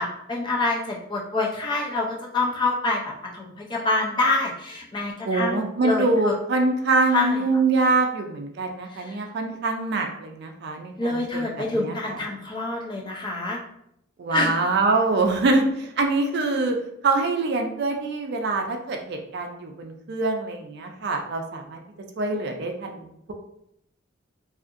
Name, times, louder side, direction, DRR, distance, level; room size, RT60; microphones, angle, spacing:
voice 1, 0.0-6.4 7.1-7.4 8.9-9.2 11.0-13.6 14.3-14.5, left 2 dB, 20° left, -2 dB, 0.4 m, -26 dB
voice 2, 5.2-12.2 14.2-16.8 17.0-21.8 22.2-23.3, right 3 dB, 50° right, 3 dB, 0.4 m, -24 dB
2.7 x 2.5 x 2.5 m, 0.76 s
head